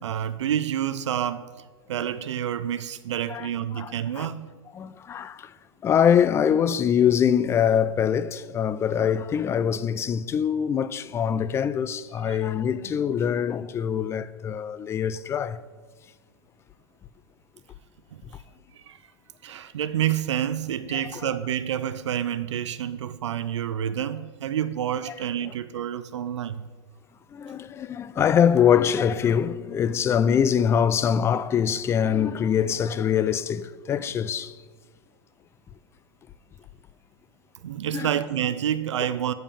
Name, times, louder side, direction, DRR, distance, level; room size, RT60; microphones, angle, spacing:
voice 1, 0.0-4.5 12.2-12.4 18.1-18.2 18.7-19.0 19.4-26.7 37.6-39.3, right 10 dB, 85° right, 0.4 m, -28 dB
voice 2, 3.7-4.3 4.7-5.5 5.8-15.6 20.9-21.2 27.3-34.5 37.9-38.1, left 8 dB, 20° left, 0.3 m, -23 dB
7.0 x 5.3 x 7.3 m
hypercardioid pair, 120°, 15 cm